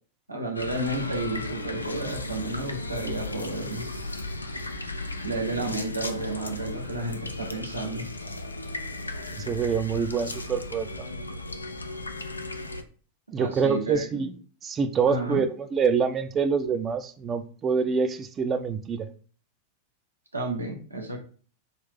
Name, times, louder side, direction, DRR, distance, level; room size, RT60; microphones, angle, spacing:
voice 1, 0.3-3.8 5.2-8.1 13.4-14.3 15.1-15.4 20.3-21.2, right 2 dB, 80° right, 1.0 m, -31 dB
sound 1, 0.5-12.8, left 2 dB, 80° left, 0.4 m, -35 dB
voice 2, 9.4-11.3 13.3-14.3 14.6-19.1, right 6 dB, 25° right, 0.4 m, -26 dB
3.8 x 2.7 x 3.7 m
figure-of-eight pair, 90°, 0 cm